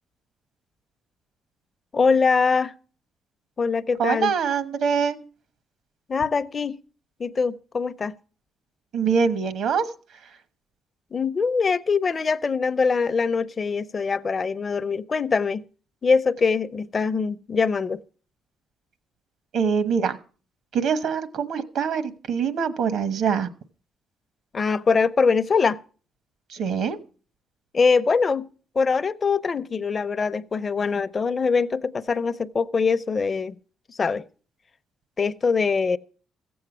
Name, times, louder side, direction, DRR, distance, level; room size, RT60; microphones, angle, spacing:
voice 1, 1.9-2.7 3.6-4.3 6.1-6.8 7.2-8.1 11.1-15.6 16.0-18.0 24.5-25.8 27.7-28.5 28.8-33.5 33.9-34.3 35.2-36.0, left 5 dB, 35° left, 0.5 m, -23 dB
voice 2, 4.0-5.2 8.9-9.8 19.5-20.2 20.7-23.5 26.5-27.0, right 6 dB, 75° right, 1.1 m, -24 dB
15.0 x 7.8 x 6.0 m
cardioid pair, 90°, 0 cm